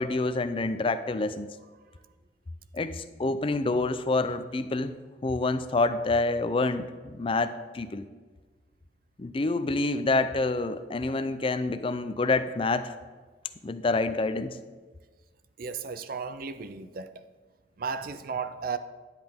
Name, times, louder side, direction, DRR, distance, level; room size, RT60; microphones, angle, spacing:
voice 1, 0.0-1.5 2.7-4.9 5.2-8.1 9.2-12.9 13.6-14.6, left 3 dB, 30° left, 0.5 m, -27 dB
voice 2, 15.6-17.3 17.8-18.8, right 5 dB, 55° right, 0.5 m, -35 dB
10.5 x 7.8 x 3.6 m
head